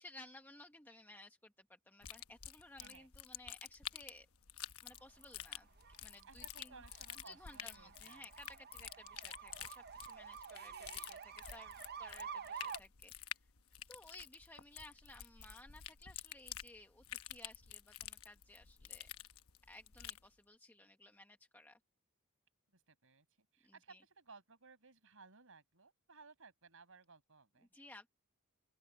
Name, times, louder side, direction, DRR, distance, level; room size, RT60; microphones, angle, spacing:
voice 1, 0.0-4.3 4.8-5.7 6.0-6.8 7.2-13.3 13.9-19.1 19.7-21.8 23.6-24.0 27.7-28.1, left 2 dB, 10° left, 1.1 m, -58 dB
sound 1, 2.0-20.3, left 11 dB, 70° left, 1.0 m, -50 dB
sound 2, 4.9-12.8, right 7 dB, 45° right, 0.7 m, -50 dB
voice 2, 6.3-8.3 22.7-27.7, right 4 dB, 65° right, 5.8 m, -60 dB
open air
head